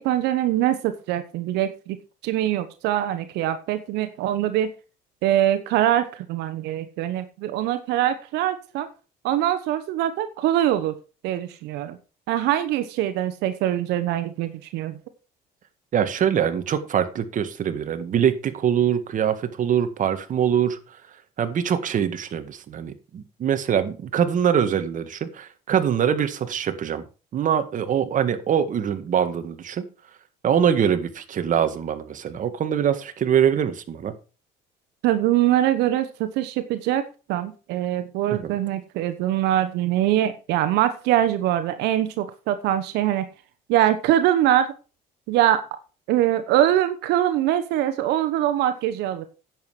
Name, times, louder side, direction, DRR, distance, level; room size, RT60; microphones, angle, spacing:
voice 1, 0.0-2.0 2.2-4.7 5.2-8.9 9.2-10.9 11.2-12.0 12.3-15.0 35.0-37.0 37.3-43.2 43.7-44.7 45.3-45.6 46.1-49.2, right 12 dB, 90° right, 10 dB, 1.1 m, -23 dB
voice 2, 15.9-20.8 21.4-27.0 27.3-29.8 30.4-34.1 38.3-38.5, right 8 dB, 50° right, 9 dB, 1.8 m, -23 dB
10.5 x 7.8 x 5.0 m, 0.33 s
cardioid pair, 110°, 17 cm